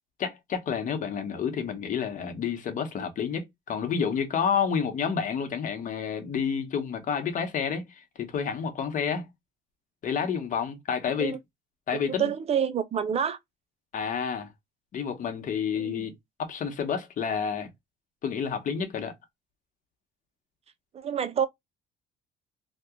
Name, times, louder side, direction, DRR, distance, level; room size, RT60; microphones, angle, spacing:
voice 1, 0.2-9.3 10.0-11.4 11.9-12.3 13.9-14.5 14.9-16.1 16.4-17.7 18.2-19.1, left 7 dB, 50° left, 1.0 m, -29 dB
voice 2, 11.9-13.4 15.8-16.1 20.9-21.5, right 8 dB, 40° right, 0.5 m, -28 dB
2.8 x 2.3 x 3.6 m
cardioid pair, 110°, 17 cm